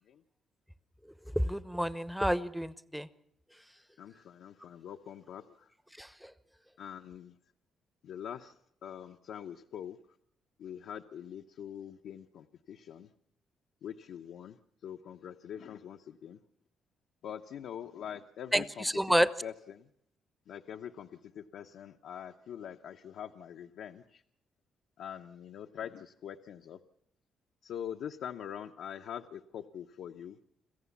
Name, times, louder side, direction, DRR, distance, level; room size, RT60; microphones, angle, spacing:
voice 1, 1.4-3.1 6.0-6.3 18.5-19.3, equal, 5° right, 15 dB, 0.9 m, -29 dB
voice 2, 4.0-5.7 6.8-7.3 8.0-8.5 8.8-10.0 10.6-13.1 13.8-14.6 14.8-16.4 17.2-18.9 19.4-19.9 20.5-21.1 21.3-24.2 25.0-26.8 27.6-30.4, left 9 dB, 75° left, 4 dB, 0.8 m, -44 dB
27.0 x 15.0 x 7.2 m, 0.73 s
cardioid pair, 90°, 0 cm